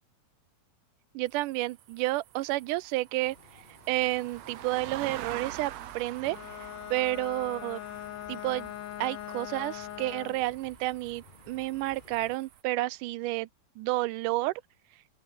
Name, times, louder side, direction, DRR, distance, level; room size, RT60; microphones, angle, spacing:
voice 1, 1.1-3.4 3.9-6.4 6.9-7.8 8.3-8.7 9.0-13.5 13.8-14.5, right 18 dB, 80° right, 2.2 m, -30 dB
sound 1, 1.3-12.6, right 11 dB, 60° right, 2.2 m, -46 dB
sound 2, 3.2-12.4, left 3 dB, 20° left, 1.8 m, -57 dB
Bowed string instrument, 6.2-10.5, left 14 dB, 80° left, 2.6 m, -41 dB
open air
omnidirectional pair, 3.7 m